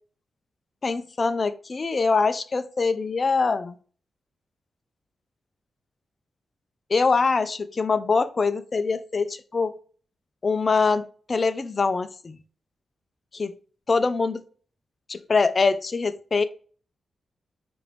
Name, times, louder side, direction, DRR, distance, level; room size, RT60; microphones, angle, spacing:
voice 1, 0.8-3.8 6.9-9.7 10.4-12.4 13.3-13.5 13.9-14.4 15.1-16.4, left 4 dB, 40° left, 12 dB, 0.4 m, -23 dB
4.7 x 2.5 x 3.1 m, 0.41 s
cardioid pair, 95°, 0 cm